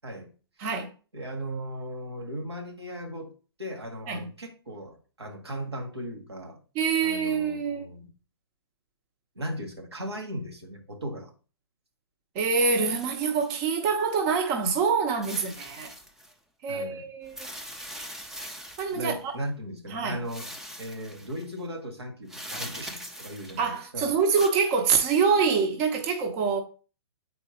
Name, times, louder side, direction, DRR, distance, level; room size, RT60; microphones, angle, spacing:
voice 1, 1.1-3.3 3.6-6.6 7.0-8.1 9.3-11.3 16.7-17.0 18.9-20.5 20.8-24.1, equal, 80° right, 1.7 m, -37 dB
voice 2, 6.7-7.9 12.3-15.9 16.6-17.5 18.8-19.4 19.9-20.2 23.6-26.6, right 5 dB, 30° right, 0.9 m, -25 dB
sound 1, 12.8-14.1 15.2-16.3 17.2-19.2 20.3-21.5 22.3-23.8 24.2-24.5, equal, 5° right, 0.5 m, -42 dB
8.0 x 4.3 x 2.9 m
figure-of-eight pair, 120°, 13 cm